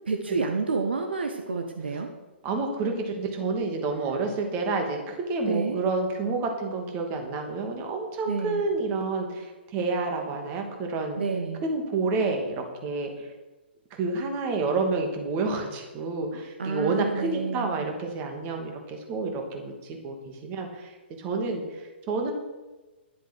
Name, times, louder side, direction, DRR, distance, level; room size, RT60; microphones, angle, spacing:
voice 1, 0.0-2.1 3.9-4.2 5.4-5.8 8.3-8.6 11.2-11.6 16.6-17.9, right 4 dB, 65° right, 5 dB, 1.3 m, -29 dB
voice 2, 2.4-11.2 11.6-13.3 14.0-22.3, right 3 dB, 30° right, 3 dB, 2.4 m, -29 dB
11.5 x 9.9 x 6.4 m, 1.2 s
figure-of-eight pair, 120°, 6 cm